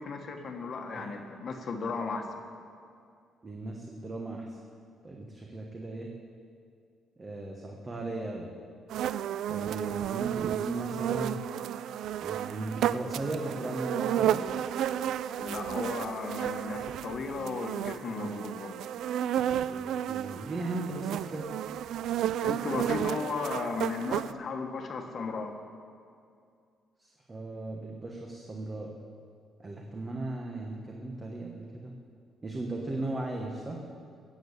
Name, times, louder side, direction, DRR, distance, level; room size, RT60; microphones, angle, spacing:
voice 1, 0.0-2.3 15.4-18.9 22.4-25.5, left 4 dB, 45° left, 4 dB, 1.5 m, -35 dB
voice 2, 3.4-4.6 5.0-6.1 7.2-8.5 9.5-11.4 12.2-14.5 18.2-18.3 19.6-21.5 27.0-28.9 29.6-31.9 32.4-33.8, right 2 dB, 20° right, 0 dB, 1.3 m, -37 dB
sound 1, 8.9-24.3, right 10 dB, 75° right, 0.3 m, -32 dB
17.0 x 7.2 x 8.2 m, 2.3 s
cardioid pair, 130°, 0 cm